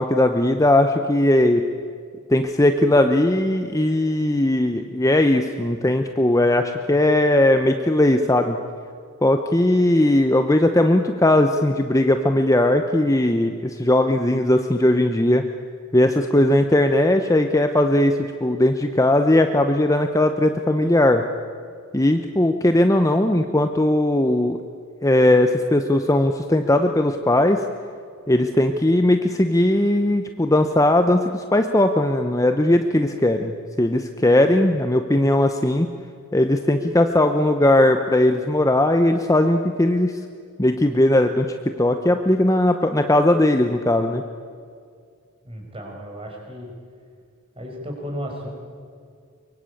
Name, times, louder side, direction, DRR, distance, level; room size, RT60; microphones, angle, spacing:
voice 1, 0.0-1.6 2.3-8.6 9.2-15.4 15.9-21.2 21.9-24.6 25.0-27.6 28.3-35.9 36.3-40.1 40.6-44.2, left 1 dB, 15° left, 6 dB, 0.8 m, -18 dB
voice 2, 45.5-46.7 47.6-48.5, equal, 25° right, 1 dB, 5.6 m, -34 dB
23.5 x 23.0 x 8.5 m, 2.2 s
head